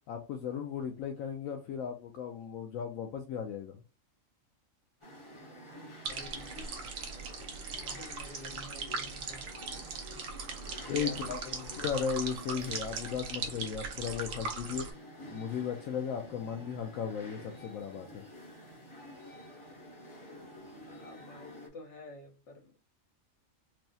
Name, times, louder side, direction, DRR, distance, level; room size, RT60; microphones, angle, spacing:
voice 1, 0.1-3.8 10.9-11.4 11.8-14.9 15.3-18.2, left 7 dB, 80° left, 1.0 m, -36 dB
sound 1, 5.0-21.7, equal, 25° left, 0.9 m, -50 dB
voice 2, 5.9-7.0 7.4-10.0 10.6-12.0 20.8-22.8, left 3 dB, 60° left, 1.3 m, -50 dB
sound 2, 6.0-14.9, right 4 dB, 75° right, 1.1 m, -39 dB
4.6 x 2.0 x 2.7 m
omnidirectional pair, 1.4 m